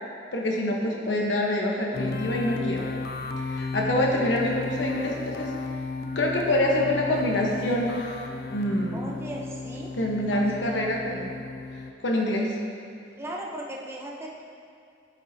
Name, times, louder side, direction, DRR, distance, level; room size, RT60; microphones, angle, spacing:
voice 1, 0.3-2.8 3.4-5.5 6.1-8.2 8.5-9.1 9.9-11.3 12.0-12.6, left 1 dB, 80° left, -1 dB, 1.0 m, -26 dB
sound 1, 1.9-11.9, left 3 dB, 55° left, 0.4 m, -34 dB
voice 2, 8.9-9.9 10.3-10.9 13.2-14.4, right 1 dB, 15° right, -2 dB, 0.7 m, -37 dB
10.0 x 5.3 x 2.7 m, 2.4 s
head